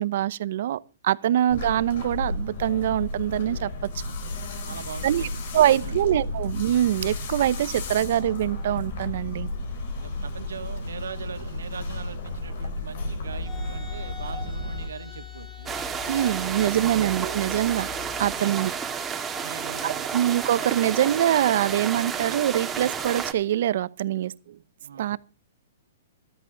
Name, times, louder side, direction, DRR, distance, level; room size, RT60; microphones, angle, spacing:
voice 1, 0.0-4.0 5.0-5.3 5.5-9.5 16.1-17.9 18.2-18.7 19.8-24.6 25.0-25.2, right 12 dB, 60° right, 0.8 m, -24 dB
sound 1, 1.5-14.9, left 2 dB, 60° left, 4.5 m, -33 dB
voice 2, 4.6-6.4 10.0-15.8 18.2-18.7 19.4-20.1 24.8-25.1, right 6 dB, 90° right, 2.3 m, -41 dB
sound 2, 13.3-18.3, left 8 dB, 20° left, 6.0 m, -41 dB
sound 3, 15.7-23.3, right 6 dB, 15° right, 2.1 m, -31 dB
13.5 x 13.0 x 3.9 m
hypercardioid pair, 145°, 0 cm